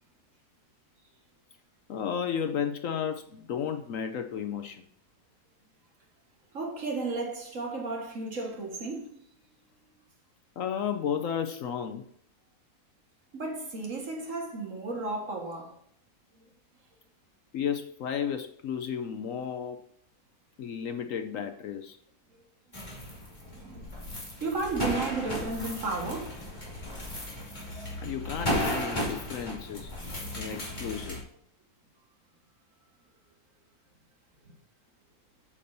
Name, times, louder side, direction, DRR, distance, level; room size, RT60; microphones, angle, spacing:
voice 1, 1.9-4.9 10.6-12.1 17.5-19.8 20.6-22.0 28.0-29.9 30.4-31.2, left 8 dB, 65° left, 0.9 m, -33 dB
voice 2, 6.5-9.2 13.3-15.8 23.4-23.9 24.4-26.4, right 3 dB, 55° right, 1.9 m, -33 dB
sound 1, 22.7-31.2, equal, 30° left, 2.6 m, -35 dB
8.4 x 7.0 x 2.6 m
omnidirectional pair, 1.7 m